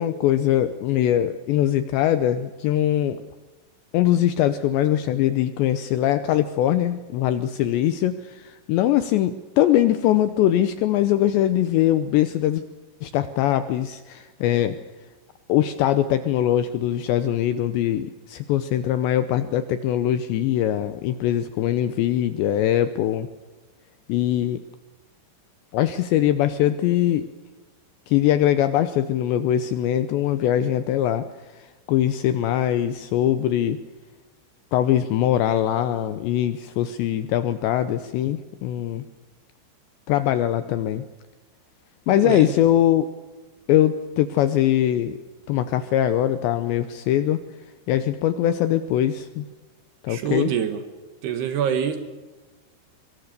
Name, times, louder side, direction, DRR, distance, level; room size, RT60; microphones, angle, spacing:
voice 1, 0.0-3.2 3.9-12.6 13.0-14.8 15.5-23.3 24.1-24.6 25.7-27.3 28.1-33.8 34.7-39.0 40.1-41.0 42.1-43.1 43.7-45.2 45.5-47.4 47.9-49.5 50.0-50.5, left 12 dB, 80° left, 12 dB, 2.6 m, -22 dB
voice 2, 42.2-42.5 50.1-50.8 51.2-52.0, right 8 dB, 65° right, 9 dB, 2.9 m, -25 dB
24.0 x 23.0 x 6.7 m, 1.3 s
omnidirectional pair, 5.9 m